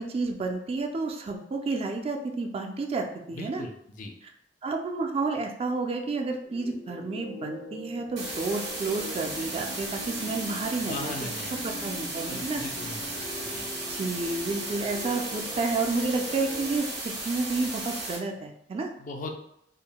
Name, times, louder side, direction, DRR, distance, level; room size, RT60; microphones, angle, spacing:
voice 1, 0.0-3.6 4.6-11.1 11.6-12.6 13.9-18.9, right 3 dB, 35° right, 3 dB, 0.3 m, -30 dB
voice 2, 3.3-4.1 10.8-11.5 12.3-13.0 13.4-13.7 19.0-19.3, left 2 dB, 45° left, 3 dB, 0.4 m, -38 dB
sound 1, 6.4-16.8, left 2 dB, 75° left, 0.8 m, -42 dB
sound 2, 8.2-18.2, right 2 dB, 85° right, 1.1 m, -35 dB
3.6 x 2.0 x 2.2 m, 0.74 s
head